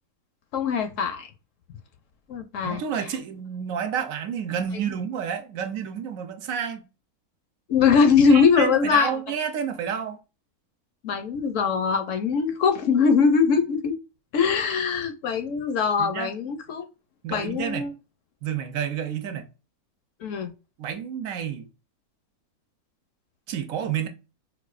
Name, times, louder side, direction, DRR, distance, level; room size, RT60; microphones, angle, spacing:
voice 1, 0.5-1.3 2.3-2.8 7.7-9.1 11.0-14.0 14.3-16.8 17.3-17.9 20.2-20.5, left 6 dB, 70° left, 0.8 m, -22 dB
voice 2, 2.6-6.8 8.3-10.2 16.0-16.3 17.2-17.9 18.4-19.5 20.8-21.7 23.5-24.1, right 8 dB, 70° right, 0.9 m, -30 dB
4.1 x 2.2 x 2.3 m
omnidirectional pair, 1.6 m